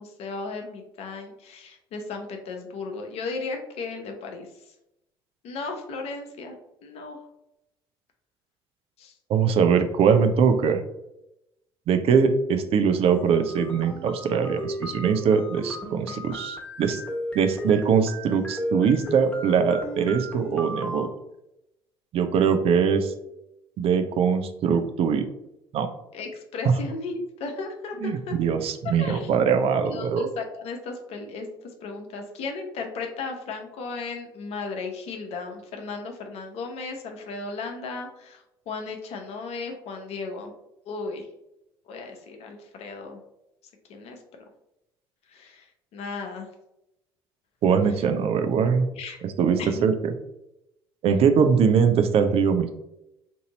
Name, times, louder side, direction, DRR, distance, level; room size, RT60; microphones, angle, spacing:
voice 1, 0.0-4.7 5.4-6.5 6.8-7.2 9.0-9.1 26.1-28.3 28.8-29.3 29.8-40.5 40.9-41.3 41.9-43.2 43.9-44.2 45.3-46.5 47.9-48.0 48.9-49.2 49.6-49.8, left 4 dB, 55° left, 4 dB, 0.8 m, -35 dB
voice 2, 9.3-10.8 11.9-17.0 17.3-21.1 22.1-23.1 23.8-25.3 25.7-25.9 26.6-26.7 28.0-30.2 47.6-48.9 49.4-50.1 51.0-52.7, right 6 dB, 50° right, 7 dB, 0.5 m, -22 dB
sound 1, 13.1-21.1, equal, 10° left, 0.8 m, -35 dB
2.7 x 2.6 x 4.0 m, 0.85 s
hypercardioid pair, 60°, 13 cm